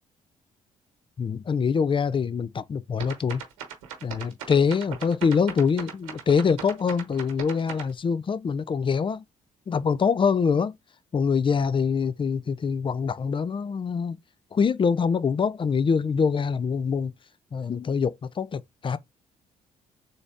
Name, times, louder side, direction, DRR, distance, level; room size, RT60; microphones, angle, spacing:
voice 1, 1.2-3.4 4.0-9.2 9.7-10.7 11.1-14.2 14.5-17.1 17.5-19.0, left 6 dB, 30° left, 0.5 m, -24 dB
sound 1, 3.0-7.9, right 8 dB, 90° right, 1.1 m, -38 dB
3.8 x 2.6 x 3.4 m
hypercardioid pair, 55°, 16 cm